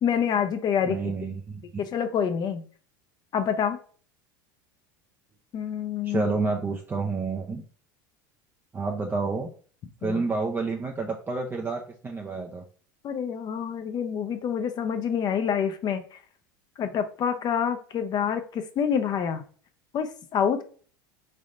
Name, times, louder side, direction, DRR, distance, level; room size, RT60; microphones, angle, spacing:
voice 1, 0.0-1.1 1.8-2.6 3.3-3.8 5.5-6.3 10.0-10.2 13.0-16.0 16.8-19.4 19.9-20.6, left 7 dB, 40° left, 8 dB, 0.6 m, -27 dB
voice 2, 0.9-1.6 6.0-7.6 8.7-9.5 10.0-12.6, right 4 dB, 20° right, 1 dB, 0.5 m, -29 dB
4.0 x 3.3 x 2.5 m, 0.43 s
hypercardioid pair, 90°, 11 cm